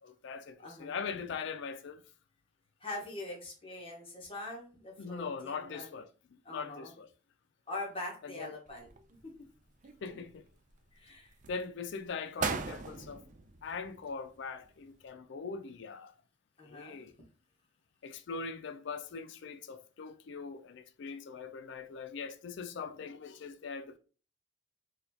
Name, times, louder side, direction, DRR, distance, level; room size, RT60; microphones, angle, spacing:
voice 1, 0.0-2.0 5.0-6.1 6.5-7.1 8.2-8.5 10.0-10.4 11.5-13.2 13.6-16.1 16.6-17.1 18.0-24.0, left 5 dB, 65° left, 0.4 m, -41 dB
voice 2, 0.6-0.9 2.8-5.9 6.4-6.9 7.7-9.2 10.9-11.3 16.6-17.0, left 2 dB, 30° left, 1.1 m, -43 dB
sound 1, 8.7-9.4 9.8-10.7 11.3-11.6 12.1-12.2 12.4-14.3 14.6-14.7, right 5 dB, 40° right, 0.3 m, -39 dB
4.0 x 2.3 x 2.7 m
head